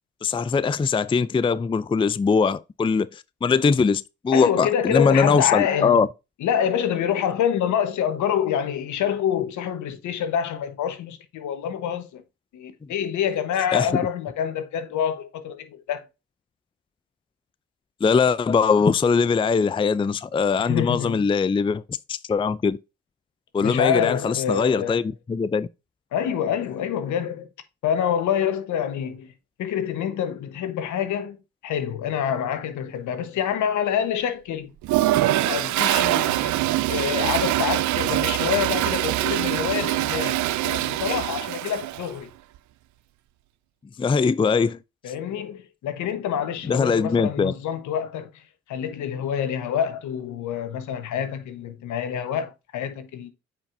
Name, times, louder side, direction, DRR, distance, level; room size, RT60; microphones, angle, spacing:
voice 1, 0.2-6.1 13.7-13.9 18.0-21.8 22.1-22.8 23.5-25.0 25.3-25.7 44.0-44.8 46.6-47.5, left 5 dB, 15° left, 0.4 m, -21 dB
voice 2, 4.3-6.0 6.4-12.2 12.5-16.0 20.6-21.2 23.6-25.1 26.1-27.5 27.8-29.3 29.6-31.4 31.6-34.7 35.2-42.3 45.0-48.4 48.7-53.3, left 9 dB, 75° left, 1.1 m, -27 dB
Toilet flush, 34.8-42.1, right 15 dB, 70° right, 0.5 m, -23 dB
8.6 x 4.6 x 2.6 m
hypercardioid pair, 50°, 30 cm